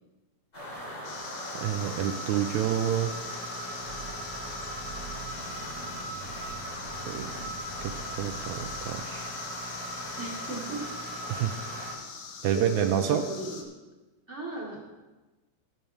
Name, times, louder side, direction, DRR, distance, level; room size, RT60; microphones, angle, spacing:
sound 1, 0.5-11.9, right 1 dB, 20° left, 4.8 m, -39 dB
sound 2, 1.0-13.6, left 5 dB, 75° left, 2.8 m, -43 dB
voice 1, 1.6-3.1 7.1-7.3 7.8-7.9 8.2-9.3 11.3-11.6 12.4-13.2, right 10 dB, 80° right, 6 dB, 1.8 m, -28 dB
sound 3, 3.8-8.9, right 4 dB, 60° right, 1.9 m, -46 dB
voice 2, 10.2-10.8 12.5-13.6 14.3-14.9, right 2 dB, 20° right, -3 dB, 2.4 m, -36 dB
17.5 x 7.1 x 4.5 m, 1.1 s
omnidirectional pair, 3.7 m